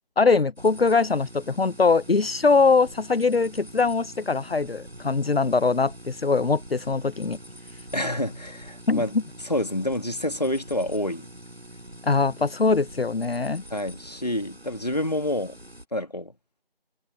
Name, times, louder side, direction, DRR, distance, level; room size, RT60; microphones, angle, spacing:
voice 1, 0.2-7.4 8.9-9.0 12.0-13.6, left 4 dB, 75° left, 0.7 m, -22 dB
sound 1, 0.6-15.8, right 1 dB, 90° right, 7.1 m, -45 dB
voice 2, 7.9-9.1 9.4-11.3 13.7-15.6 15.9-16.3, left 1 dB, 40° left, 2.3 m, -28 dB
figure-of-eight pair, 175°, 30 cm